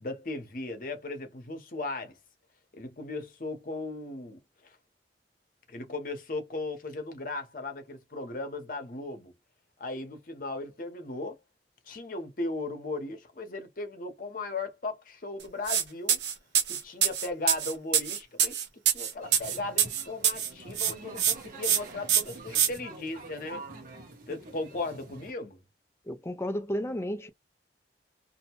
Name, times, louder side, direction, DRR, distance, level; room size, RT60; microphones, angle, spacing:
voice 1, 0.0-2.2 2.7-4.8 5.7-9.3 9.8-11.4 11.9-16.2 16.7-23.6 24.3-25.6, left 2 dB, 50° left, 0.8 m, -37 dB
sound 1, 15.7-15.8 16.1-20.5 20.8-21.3 21.6-21.8 22.1-22.7, right 8 dB, 75° right, 0.7 m, -25 dB
sound 2, 19.2-25.3, right 2 dB, 50° right, 1.0 m, -46 dB
voice 2, 26.1-27.3, equal, 15° left, 0.3 m, -32 dB
2.6 x 2.1 x 2.9 m
head